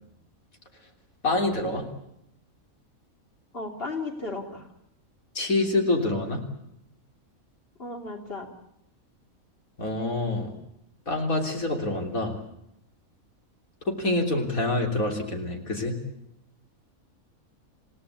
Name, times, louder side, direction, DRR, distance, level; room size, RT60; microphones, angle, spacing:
voice 1, 1.2-1.9 5.4-6.4 9.8-10.5 11.1-12.4 13.9-16.0, left 2 dB, 80° left, 3 dB, 3.9 m, -26 dB
voice 2, 3.5-4.7 7.8-8.5, left 3 dB, 45° left, 3 dB, 3.4 m, -34 dB
28.5 x 17.5 x 8.5 m, 0.78 s
omnidirectional pair, 1.4 m